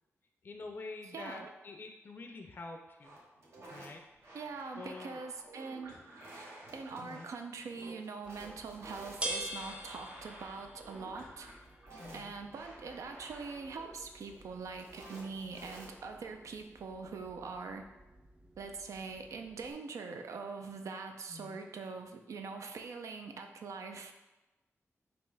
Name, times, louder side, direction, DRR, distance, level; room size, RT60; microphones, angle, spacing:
voice 1, 0.4-3.2 3.7-4.0 4.7-5.2 6.9-7.3 12.0-12.3 21.3-21.6, left 3 dB, 40° left, 4 dB, 0.4 m, -47 dB
voice 2, 1.1-1.5 4.3-6.0 6.3-11.5 12.1-17.9 18.6-24.1, right 4 dB, 80° right, 5 dB, 0.4 m, -43 dB
sound 1, 3.0-16.2, right 2 dB, 65° right, 1.2 m, -52 dB
sound 2, 8.2-19.7, right 1 dB, 20° right, 0.4 m, -47 dB
5.3 x 2.9 x 3.3 m, 1.1 s
wide cardioid pair, 130°, 5 cm